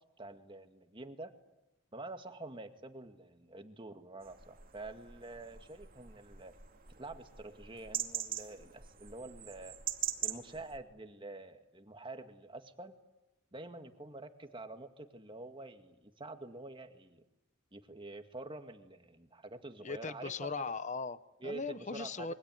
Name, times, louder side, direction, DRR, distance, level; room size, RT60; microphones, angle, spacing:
voice 1, 0.2-1.3 1.9-6.5 7.0-9.8 10.2-13.0 13.5-17.2 17.7-20.5 21.4-22.3, right 2 dB, 25° right, 7 dB, 2.0 m, -47 dB
sound 1, 4.2-10.8, right 10 dB, 45° right, 2.4 m, -42 dB
voice 2, 19.8-22.3, left 4 dB, 35° left, 14 dB, 0.9 m, -39 dB
27.0 x 23.5 x 9.2 m, 0.95 s
head